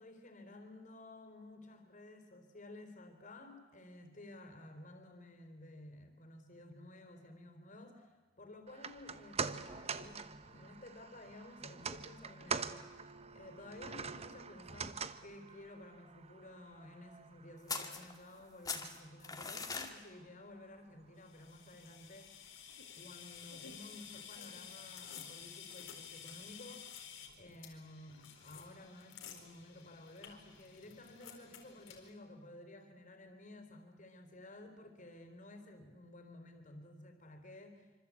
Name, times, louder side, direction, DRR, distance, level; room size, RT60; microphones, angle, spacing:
voice 1, 0.0-22.5 23.0-37.9, left 1 dB, 40° left, 7 dB, 4.0 m, -54 dB
sound 1, 8.7-21.1 21.4-21.5, right 5 dB, 30° right, 1.0 m, -45 dB
sound 2, 17.7-18.4 18.7-19.9, left 4 dB, 20° left, 2.2 m, -41 dB
sound 3, 21.2-32.1, left 8 dB, 85° left, 4.3 m, -52 dB
26.0 x 25.5 x 8.6 m, 1.3 s
head